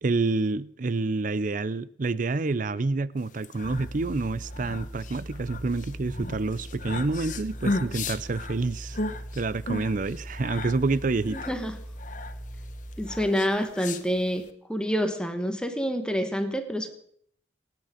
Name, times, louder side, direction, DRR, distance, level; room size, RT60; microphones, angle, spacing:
voice 1, 0.0-9.0 9.3-11.4, right 3 dB, 50° right, 0.5 m, -28 dB
sound 1, 3.3-14.5, left 2 dB, 45° left, 1.1 m, -36 dB
sound 2, 3.6-13.3, right 1 dB, 30° left, 2.4 m, -40 dB
voice 2, 11.3-11.8 13.0-16.9, equal, 5° left, 1.2 m, -28 dB
26.5 x 9.2 x 5.0 m
head